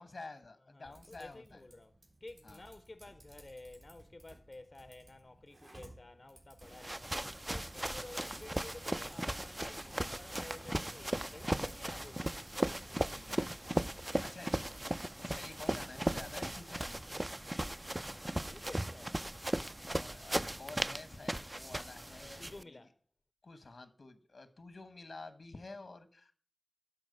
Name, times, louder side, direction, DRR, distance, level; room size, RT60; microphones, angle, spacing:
voice 1, 0.0-1.6 2.4-2.6 13.0-13.6 14.0-14.6 15.2-17.0 19.9-22.8 23.4-26.3, left 3 dB, 85° left, 1.1 m, -50 dB
voice 2, 0.7-12.5 17.9-19.3 22.4-23.0, left 2 dB, 55° left, 0.6 m, -53 dB
Typing, 0.8-17.1, right 1 dB, 80° right, 4.0 m, -60 dB
sound 1, 6.6-22.6, right 1 dB, 25° right, 0.3 m, -37 dB
11.5 x 4.3 x 5.3 m
wide cardioid pair, 50°, 0 cm